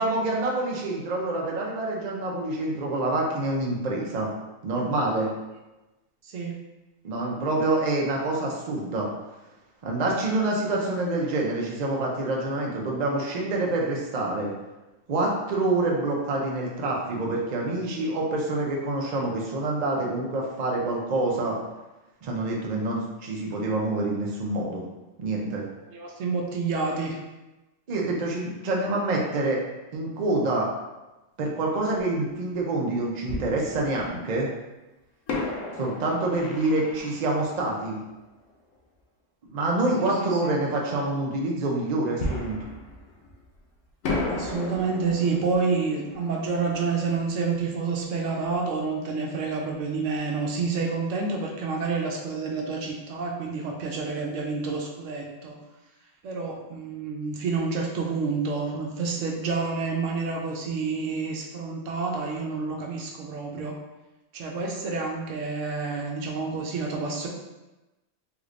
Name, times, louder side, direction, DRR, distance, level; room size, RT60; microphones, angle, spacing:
voice 1, 0.0-4.3 4.6-5.3 7.0-9.1 9.8-14.5 15.1-21.6 22.2-24.8 25.2-25.6 27.9-29.6 29.9-30.7 31.4-34.5 35.8-38.0 39.5-42.6, right 2 dB, 50° right, -2 dB, 0.5 m, -26 dB
voice 2, 6.2-6.6 25.9-27.2 36.1-36.2 40.0-40.5 44.2-55.6 56.2-63.8 64.3-67.3, right 4 dB, 75° right, 0 dB, 0.9 m, -29 dB
Fireworks, 32.0-32.1 33.3-34.4 35.3-38.7 42.2-43.6 44.0-48.6 48.8-48.9 49.5-49.7, left 2 dB, 85° left, 1.0 m, -35 dB
3.3 x 3.1 x 2.5 m, 1.1 s
omnidirectional pair, 1.3 m